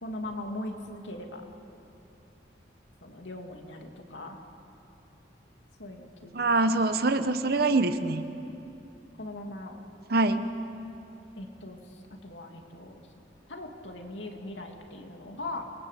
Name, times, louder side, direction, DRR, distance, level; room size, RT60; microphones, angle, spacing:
voice 1, 0.0-1.4 3.0-4.4 5.8-6.6 9.2-9.8 11.4-13.1 13.5-15.7, left 1 dB, 80° left, 2 dB, 2.7 m, -40 dB
voice 2, 6.3-8.2 10.1-10.4, right 2 dB, 55° right, 10 dB, 1.1 m, -24 dB
28.0 x 19.5 x 8.3 m, 2.9 s
head